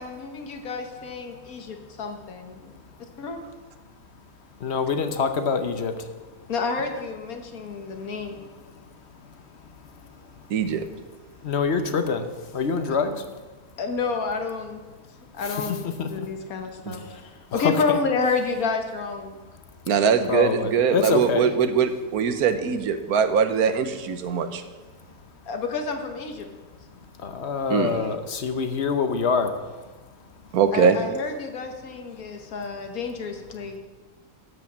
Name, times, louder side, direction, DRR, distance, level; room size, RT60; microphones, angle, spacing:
voice 1, 0.0-2.7 3.2-3.4 6.5-8.4 13.8-14.8 15.4-17.2 17.5-19.4 25.5-26.5 30.7-33.8, left 4 dB, 75° left, 5 dB, 1.7 m, -29 dB
voice 2, 4.6-5.9 11.4-13.2 16.0-16.1 20.3-21.5 27.2-29.5, left 5 dB, 55° left, 8 dB, 1.0 m, -25 dB
voice 3, 10.5-10.8 16.9-17.0 19.9-24.6 27.7-28.0 30.5-31.0, right 6 dB, 85° right, 9 dB, 1.3 m, -22 dB
12.5 x 5.3 x 7.3 m, 1.3 s
omnidirectional pair, 1.5 m